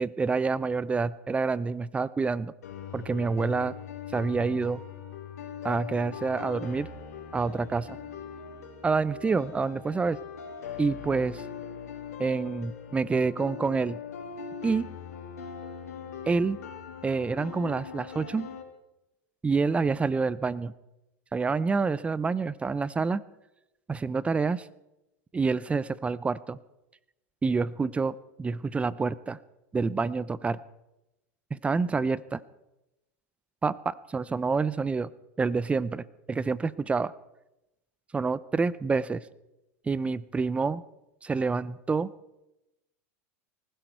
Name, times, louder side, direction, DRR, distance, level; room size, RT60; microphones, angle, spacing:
voice 1, 0.0-2.5 2.9-3.7 4.1-4.8 5.6-6.9 7.3-7.9 8.8-10.2 10.8-11.4 12.2-14.0 14.6-14.9 16.3-16.6 17.0-18.5 19.4-20.7 21.3-23.2 23.9-24.7 25.3-26.6 27.4-29.4 29.7-30.6 31.5-32.4 33.6-35.1 35.4-37.1 38.1-39.2 39.9-40.8 41.2-42.1, right 4 dB, 15° right, 19 dB, 0.6 m, -27 dB
sound 1, 2.6-18.6, left 7 dB, 90° left, 3.0 m, -41 dB
19.0 x 16.0 x 4.6 m, 0.94 s
hypercardioid pair, 110°, 8 cm